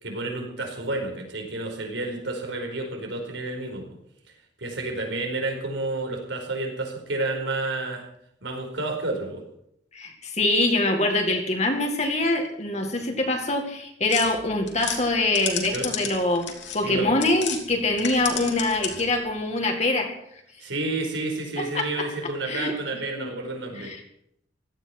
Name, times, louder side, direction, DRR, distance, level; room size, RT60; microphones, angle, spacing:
voice 1, 0.0-3.9 4.6-8.0 8.4-9.4 15.7-15.9 16.8-17.2 20.6-23.9, right 2 dB, 75° right, 3 dB, 4.8 m, -30 dB
voice 2, 9.9-16.5 16.7-20.1 21.6-22.1 22.5-22.7 23.2-23.3 23.8-24.0, left 2 dB, 35° left, 3 dB, 2.1 m, -24 dB
sound 1, 14.1-17.6 17.9-19.2, left 8 dB, 75° left, 3.1 m, -33 dB
16.5 x 13.5 x 6.1 m, 0.74 s
head